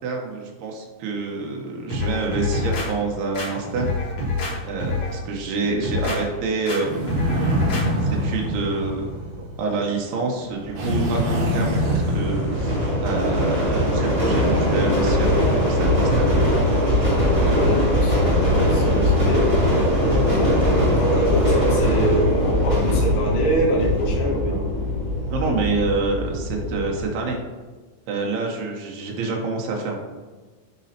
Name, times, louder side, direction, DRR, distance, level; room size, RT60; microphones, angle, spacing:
voice 1, 0.0-3.9 4.6-7.3 7.9-9.2 9.6-12.8 13.0-16.3 25.3-27.4 28.1-30.0, right 3 dB, 85° right, 0 dB, 2.9 m, -27 dB
sound 1, 1.9-2.9 3.3-4.5 4.8-5.2 5.6-6.2 6.7-6.8 7.1-7.8 8.2-8.3, left 3 dB, 50° left, 1.8 m, -26 dB
sound 2, 6.8-9.8 10.7-13.5, equal, 65° right, 1.9 m, -25 dB
sound 3, 10.6-27.1, left 1 dB, 20° right, 0.8 m, -21 dB
voice 2, 17.4-19.5 20.0-24.7, right 1 dB, 75° left, -5 dB, 3.2 m, -25 dB
11.5 x 4.1 x 2.8 m, 1.3 s
omnidirectional pair, 4.5 m